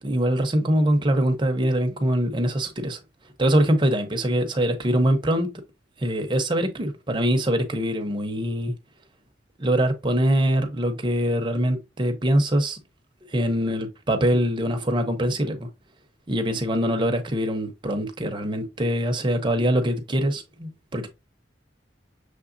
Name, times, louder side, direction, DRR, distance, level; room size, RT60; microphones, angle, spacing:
voice 1, 0.0-3.0 3.4-5.5 6.0-8.7 9.6-12.8 13.3-15.7 16.3-21.1, right 1 dB, 25° right, 0.7 m, -23 dB
5.9 x 3.2 x 2.5 m
head